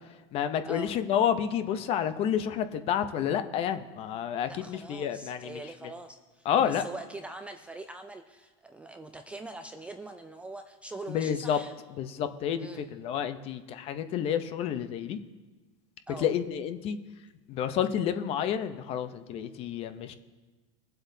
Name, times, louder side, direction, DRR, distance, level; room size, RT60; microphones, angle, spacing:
voice 1, 0.3-5.6 6.5-6.8 11.1-11.6 12.0-15.2 16.2-17.0 17.5-20.1, left 9 dB, 35° left, 10 dB, 0.7 m, -29 dB
voice 2, 4.5-11.7 12.6-12.9 16.1-16.3, right 2 dB, 5° right, 5 dB, 0.3 m, -43 dB
22.5 x 7.7 x 2.7 m, 1.3 s
supercardioid pair, 150°, 17 cm